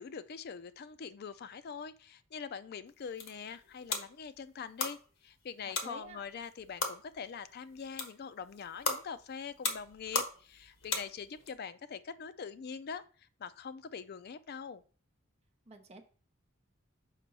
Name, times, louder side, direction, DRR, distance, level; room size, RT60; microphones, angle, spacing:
voice 1, 0.0-5.0 5.2-14.8, left 6 dB, 50° left, 13 dB, 0.4 m, -43 dB
sound 1, 2.9-11.5, left 4 dB, 75° left, 1.4 m, -39 dB
voice 2, 5.6-6.2 15.7-16.1, right 2 dB, 30° right, 5 dB, 1.0 m, -49 dB
6.6 x 5.4 x 4.1 m, 0.40 s
head